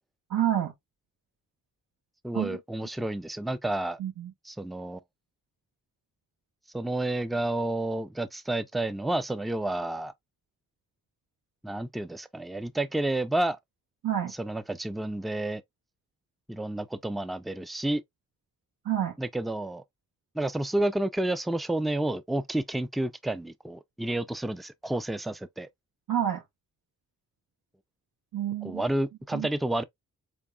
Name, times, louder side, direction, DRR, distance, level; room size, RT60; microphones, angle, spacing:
voice 1, 0.3-0.7 2.3-2.6 4.0-4.3 14.0-14.3 18.8-19.2 26.1-26.4 28.3-28.8 29.3-29.5, right 11 dB, 70° right, 0.9 m, -28 dB
voice 2, 2.2-4.0 4.4-5.0 6.7-10.1 11.6-13.6 14.4-15.6 16.5-18.0 19.2-19.8 20.3-25.7 28.6-29.8, right 1 dB, ahead, 0.4 m, -30 dB
4.1 x 3.5 x 2.2 m
supercardioid pair, 40°, 36 cm